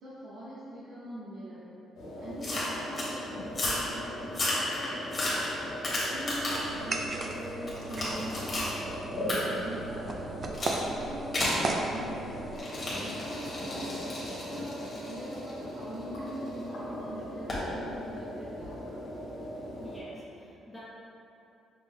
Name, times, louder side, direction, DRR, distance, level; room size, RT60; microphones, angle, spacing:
voice 1, 0.0-1.7 2.2-4.6 4.9-5.1 6.1-9.2 9.6-10.4 10.9-12.4 12.9-18.8, equal, 80° right, -12 dB, 1.0 m, -43 dB
sound 1, 2.0-20.0, equal, 90° left, 1.3 m, -39 dB
sound 2, 2.4-3.1 3.5-3.9 4.3-6.7 7.2-8.7 9.3-9.4 10.5-10.8 11.3-11.6 12.5-16.5 17.5-17.7, left 1 dB, 30° left, 1.2 m, -33 dB
sound 3, 6.3-12.6, right 3 dB, 40° right, 0.4 m, -37 dB
voice 2, 19.8-20.8, left 1 dB, 5° left, -9 dB, 0.6 m, -48 dB
5.7 x 2.1 x 3.6 m, 2.8 s
cardioid pair, 115°, 0 cm